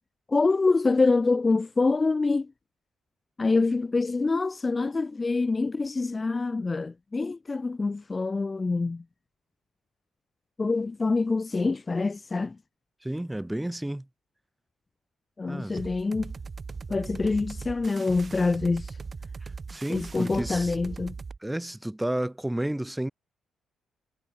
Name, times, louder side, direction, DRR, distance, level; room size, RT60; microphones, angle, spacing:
voice 1, 0.3-2.5 3.4-9.0 10.6-12.6 15.4-16.3 16.9-19.0 19.9-21.1, left 3 dB, 25° left, 0.5 m, -25 dB
voice 2, 13.0-14.1 15.5-15.8 19.7-20.8 21.4-23.1, right 1 dB, 5° right, 1.6 m, -31 dB
sound 1, 15.8-21.4, right 4 dB, 35° right, 1.1 m, -39 dB
cardioid pair, 90°, 0 cm